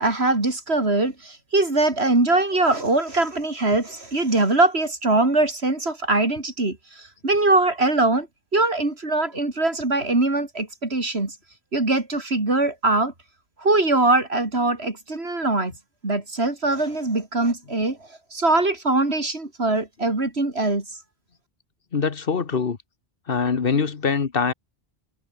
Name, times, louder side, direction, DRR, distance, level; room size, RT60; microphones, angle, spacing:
voice 1, 0.0-8.3 8.5-11.4 11.7-13.1 13.6-15.7 16.0-18.0 18.3-20.9, right 2 dB, 80° right, 4.3 m, -22 dB
voice 2, 21.9-22.8 23.3-24.5, left 5 dB, 60° left, 1.5 m, -23 dB
omnidirectional pair, 1.1 m